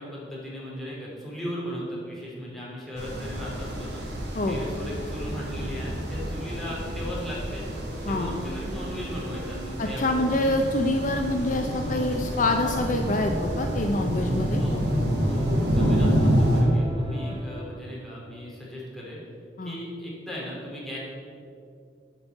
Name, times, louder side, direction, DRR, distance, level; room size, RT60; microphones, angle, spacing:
voice 1, 0.0-4.0 4.5-7.6 8.0-10.2 14.6-19.2 19.6-21.0, equal, ahead, -6 dB, 3.0 m, -37 dB
sound 1, 3.0-16.6, equal, 65° right, 2.3 m, -28 dB
sound 2, 4.6-17.6, right 1 dB, 30° right, 1.2 m, -42 dB
voice 2, 9.8-14.6 19.6-19.8, left 1 dB, 45° left, 4 dB, 0.6 m, -26 dB
10.0 x 5.3 x 8.2 m, 2.4 s
head